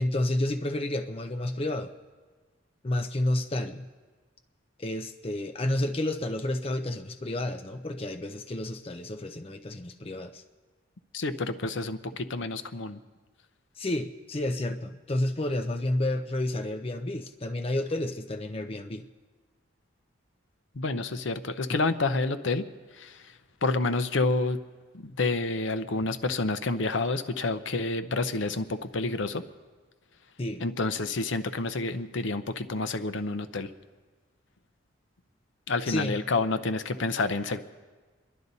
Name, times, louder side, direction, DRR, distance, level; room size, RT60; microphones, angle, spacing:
voice 1, 0.0-1.9 2.8-3.9 4.8-10.4 13.8-19.0 30.4-30.6 35.9-36.2, left 1 dB, 30° left, 5 dB, 0.6 m, -30 dB
voice 2, 11.1-13.0 20.7-22.6 22.9-23.3 23.6-24.6 24.9-29.4 30.6-33.7 35.7-37.6, left 3 dB, 65° left, 10 dB, 0.7 m, -29 dB
27.5 x 11.5 x 4.1 m, 1.4 s
head